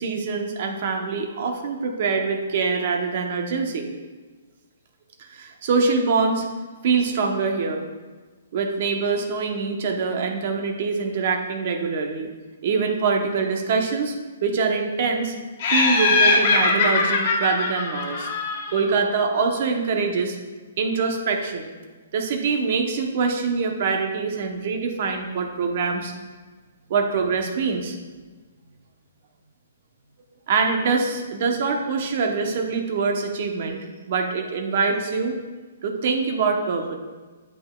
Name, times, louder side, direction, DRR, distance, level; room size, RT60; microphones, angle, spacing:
voice 1, 0.0-3.9 5.2-6.4 6.8-7.9 8.5-12.3 12.6-14.1 14.4-15.3 15.7-18.3 18.7-20.4 20.8-21.7 22.1-26.1 26.9-28.0 30.5-33.8 34.1-35.4 35.8-36.9, right 4 dB, 35° right, 3 dB, 0.8 m, -24 dB
Laughter, 15.6-18.9, left 4 dB, 35° left, 1.0 m, -21 dB
8.7 x 7.9 x 2.3 m, 1.4 s
hypercardioid pair, 175°, 0 cm